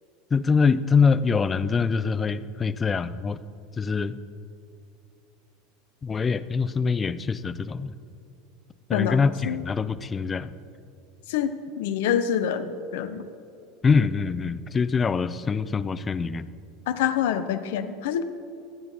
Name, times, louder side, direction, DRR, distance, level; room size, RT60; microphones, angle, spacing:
voice 1, 0.3-3.4 3.8-4.2 6.0-7.9 8.9-10.5 13.8-16.5, left 5 dB, 25° left, 14 dB, 0.5 m, -24 dB
voice 2, 8.9-9.6 11.3-13.2 16.9-18.2, left 9 dB, 65° left, 10 dB, 0.8 m, -26 dB
25.0 x 8.9 x 4.1 m, 2.5 s
figure-of-eight pair, 80°, 0 cm